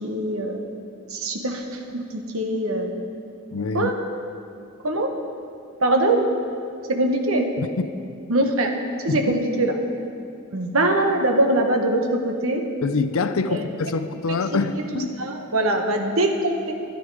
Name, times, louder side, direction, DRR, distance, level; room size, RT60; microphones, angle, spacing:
voice 1, 0.0-0.6 1.1-3.0 3.7-3.9 4.8-5.1 5.8-6.3 6.9-7.5 8.3-8.7 9.0-9.8 10.5-12.6 13.5-13.7 14.3-14.4 14.9-16.7, right 1 dB, 90° right, 4 dB, 1.2 m, -22 dB
voice 2, 3.5-3.9 7.6-7.9 9.1-9.4 12.8-15.2, left 4 dB, 80° left, 11 dB, 0.5 m, -25 dB
13.0 x 10.0 x 4.8 m, 2.4 s
head